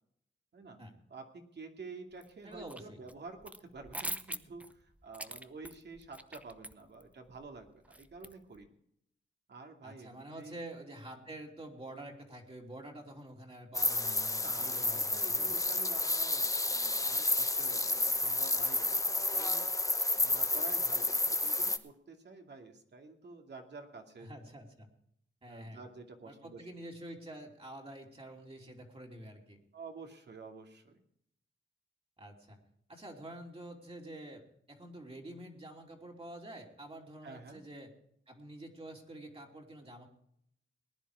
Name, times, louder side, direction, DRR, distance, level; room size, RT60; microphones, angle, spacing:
voice 1, 1.1-8.7 9.5-10.6 14.4-19.7 20.1-24.3 25.5-26.7 29.7-31.0 37.2-37.6, right 4 dB, 60° right, 3 dB, 2.5 m, -49 dB
sound 1, 2.2-2.8 3.1-8.7, right 1 dB, 5° right, 0.7 m, -44 dB
voice 2, 2.4-3.0 9.8-15.5 24.2-24.9 25.4-25.8 26.2-29.6 32.2-32.6 32.9-37.9 38.3-40.1, right 1 dB, 30° right, 0 dB, 3.0 m, -48 dB
sound 2, 13.7-21.8, left 2 dB, 15° left, 1.0 m, -31 dB
19.0 x 10.5 x 4.8 m, 0.71 s
cardioid pair, 90°, 20 cm